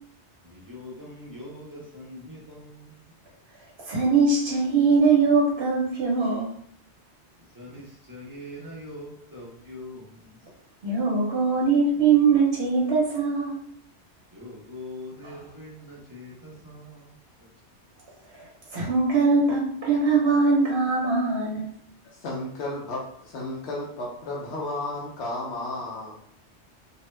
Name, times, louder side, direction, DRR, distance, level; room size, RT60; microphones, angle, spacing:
voice 1, 0.4-3.1 7.5-10.3 14.3-17.1, left 1 dB, 25° right, -5 dB, 0.5 m, -42 dB
voice 2, 3.9-6.6 10.8-13.6 15.2-15.4 18.7-21.7, right 4 dB, 65° right, -3 dB, 0.9 m, -22 dB
voice 3, 22.1-26.2, left 2 dB, 75° left, -3 dB, 0.9 m, -33 dB
2.7 x 2.1 x 3.1 m, 0.65 s
omnidirectional pair, 1.2 m